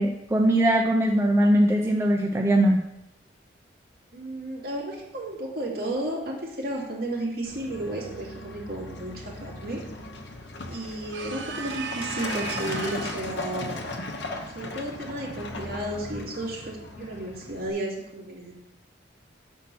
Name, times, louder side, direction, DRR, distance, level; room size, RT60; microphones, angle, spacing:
voice 1, 0.0-2.8, right 1 dB, 15° right, 0 dB, 0.5 m, -21 dB
voice 2, 4.1-9.8 10.7-13.7 14.5-18.5, right 1 dB, 55° right, -4 dB, 2.4 m, -33 dB
Truck, 7.4-17.7, left 2 dB, 70° left, 0.9 m, -37 dB
sound 1, 11.1-13.4, right 6 dB, 85° right, 0.8 m, -36 dB
7.2 x 4.4 x 6.0 m, 0.87 s
head